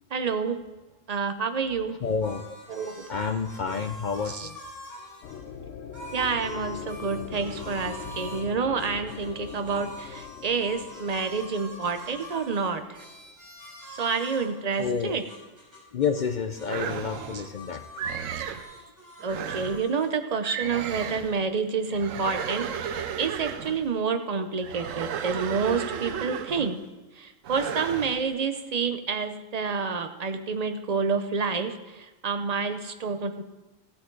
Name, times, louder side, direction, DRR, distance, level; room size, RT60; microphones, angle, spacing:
voice 1, 0.1-0.6 1.1-1.9 2.7-3.1 4.3-4.5 6.1-13.0 13.9-15.2 17.3-17.4 19.2-26.8 27.1-33.4, right 5 dB, 40° right, 8 dB, 0.6 m, -29 dB
voice 2, 2.0-2.6 3.1-4.6 14.8-15.2 15.9-17.8, left 6 dB, 55° left, 7 dB, 0.5 m, -29 dB
sound 1, 2.0-5.4 5.9-8.5 8.8-16.3 16.5-18.2 18.5-20.1, left 1 dB, 15° right, 3.2 m, -45 dB
sound 2, 5.2-13.3, left 7 dB, 75° left, 1.1 m, -41 dB
sound 3, 16.7-17.5 18.0-18.7 19.2-19.9 20.4-21.4 21.9-23.9 24.6-26.8 27.4-28.2, right 8 dB, 80° right, 1.1 m, -34 dB
15.0 x 8.5 x 3.8 m, 1.1 s
omnidirectional pair, 1.3 m